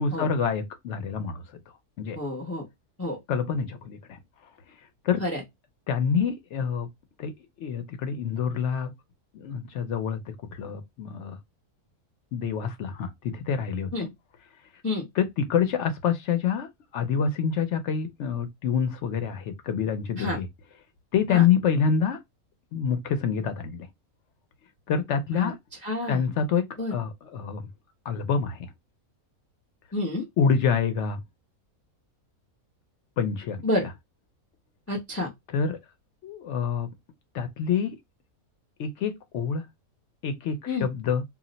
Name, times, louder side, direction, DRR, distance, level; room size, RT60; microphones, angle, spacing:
voice 1, 0.0-1.4 2.0-2.2 3.3-4.2 5.0-5.2 5.9-6.9 7.2-7.3 7.6-8.9 9.3-11.4 12.3-14.1 15.1-20.5 21.1-22.2 22.7-23.9 24.9-25.6 26.1-27.7 28.1-28.7 30.4-31.2 33.2-33.6 35.5-35.8 36.2-36.9 37.3-38.0 38.8-39.7 40.2-41.2, left 6 dB, 65° left, 0.8 m, -27 dB
voice 2, 2.2-2.6 3.0-3.2 5.2-5.4 13.9-14.1 14.8-15.0 20.2-20.4 21.3-21.4 25.3-25.5 25.8-26.3 26.8-26.9 29.9-30.2 33.6-33.9 34.9-35.3 40.7-40.9, left 2 dB, 25° left, 0.3 m, -29 dB
2.4 x 2.0 x 3.8 m
omnidirectional pair, 1.5 m